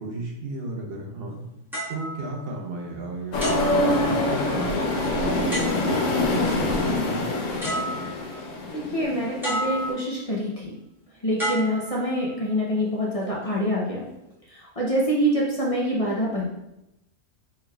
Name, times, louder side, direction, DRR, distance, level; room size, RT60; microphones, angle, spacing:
voice 1, 0.0-1.4 1.9-7.3, right 2 dB, 55° right, 0 dB, 0.9 m, -34 dB
sound 1, 1.7-2.9 3.4-4.6 5.5-6.2 7.2-7.3 7.6-8.4 9.4-10.2 11.4-12.5 13.2-13.5, right 1 dB, ahead, 1.4 m, -32 dB
sound 2, 3.3-9.9, left 2 dB, 80° left, 1.0 m, -25 dB
voice 2, 8.7-10.7 11.2-14.1 14.5-16.4, equal, 40° left, -4 dB, 0.6 m, -25 dB
4.5 x 3.2 x 2.3 m, 0.86 s
omnidirectional pair, 1.3 m